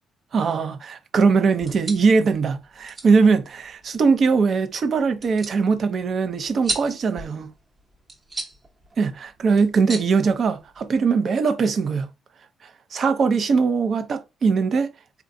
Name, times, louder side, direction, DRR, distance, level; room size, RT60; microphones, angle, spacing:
voice 1, 0.3-7.5 9.0-12.1 12.9-14.9, right 5 dB, 55° right, 0.5 m, -21 dB
sound 1, 1.5-11.0, right 3 dB, 35° right, 0.9 m, -37 dB
3.8 x 2.3 x 2.6 m
cardioid pair, 90°, 0 cm